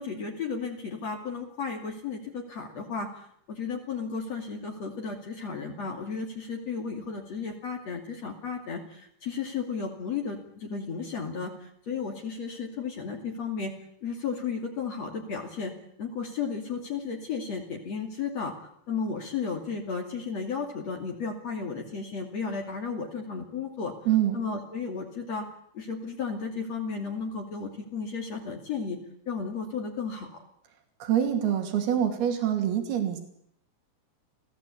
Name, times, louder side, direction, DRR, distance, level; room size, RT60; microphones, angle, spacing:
voice 1, 0.0-3.1 3.5-13.7 14.0-15.7 16.0-18.5 18.9-23.9 24.3-25.5 25.7-29.0 29.3-30.4, left 5 dB, 45° left, 2 dB, 3.5 m, -34 dB
voice 2, 24.1-24.4 31.0-33.2, right 10 dB, 90° right, 5 dB, 4.5 m, -25 dB
29.5 x 17.0 x 8.6 m, 0.72 s
omnidirectional pair, 4.3 m